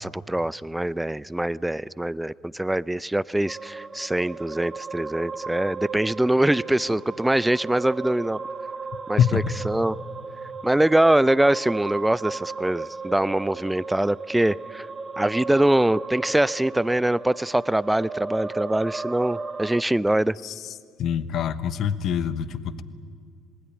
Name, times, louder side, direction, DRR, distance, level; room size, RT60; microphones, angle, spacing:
voice 1, 0.0-8.4 9.1-10.0 10.6-14.9 15.2-20.4, right 1 dB, 10° right, 20 dB, 0.6 m, -23 dB
sound 1, 3.5-19.8, right 4 dB, 30° right, 1.2 m, -35 dB
voice 2, 21.0-22.8, left 8 dB, 60° left, 13 dB, 1.2 m, -24 dB
26.5 x 20.0 x 9.8 m, 2.2 s
hypercardioid pair, 65°, 0 cm